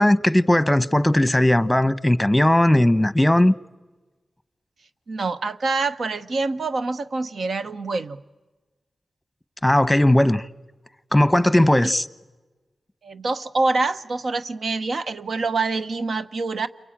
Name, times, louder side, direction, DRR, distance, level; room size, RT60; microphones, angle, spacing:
voice 1, 0.0-3.5 9.6-10.4 11.1-12.1, left 1 dB, 10° left, 1.0 m, -17 dB
voice 2, 5.1-8.2 13.0-16.7, right 3 dB, 75° right, 1.0 m, -25 dB
29.0 x 23.0 x 8.9 m
cardioid pair, 45°, 0 cm